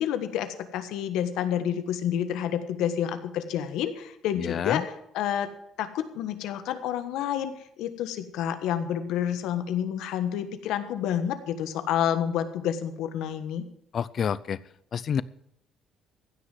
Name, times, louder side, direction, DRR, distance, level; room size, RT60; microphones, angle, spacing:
voice 1, 0.0-4.8 5.1-5.5 5.8-7.5 7.8-13.6, left 10 dB, 80° left, 10 dB, 1.3 m, -29 dB
voice 2, 4.4-4.8 13.9-14.6 14.9-15.2, left 7 dB, 45° left, 19 dB, 0.5 m, -28 dB
15.5 x 6.4 x 7.6 m, 0.74 s
cardioid pair, 130°, 0 cm